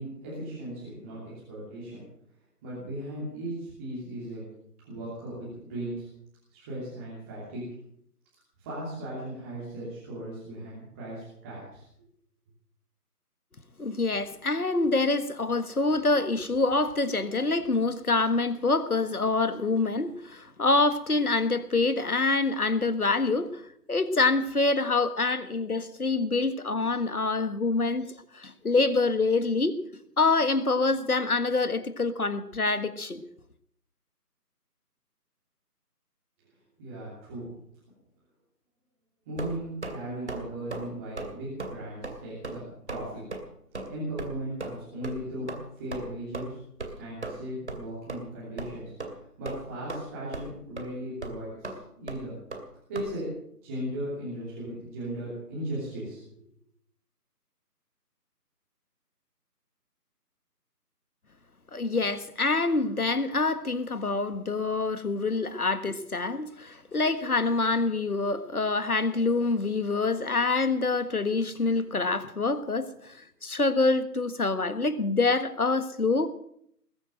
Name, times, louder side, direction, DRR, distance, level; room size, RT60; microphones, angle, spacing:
voice 1, 0.0-2.0 2.6-4.4 4.8-6.1 6.5-7.6 8.6-11.8 36.8-37.5 39.2-43.2 43.9-46.6 47.0-52.4 52.9-53.3 53.6-56.2, right 1 dB, 10° right, 2.9 m, -37 dB
voice 2, 13.8-28.1 28.3-29.8 30.2-33.2 61.7-76.3, left 3 dB, 65° left, 1.6 m, -26 dB
sound 1, 39.4-40.0 40.3-40.4 40.7-40.9 41.2-41.3 41.6-41.7 42.0-42.2 42.4-42.6 42.9-43.0 43.3-43.4 43.7-43.9 44.2-44.3 44.6-44.8 45.0-45.2 45.5-45.6 45.9-46.0 46.3-46.4 46.8-46.9 47.2-47.4 47.7-47.8 48.1-48.2 48.6-48.7 49.0-49.1 49.4-50.0 50.3-50.5 50.8-50.9 51.2-51.3 51.6-51.8 52.1-52.2 52.5-52.6 52.9-53.1, right 3 dB, 45° right, 2.5 m, -36 dB
20.5 x 9.1 x 7.7 m
figure-of-eight pair, 160°, 48 cm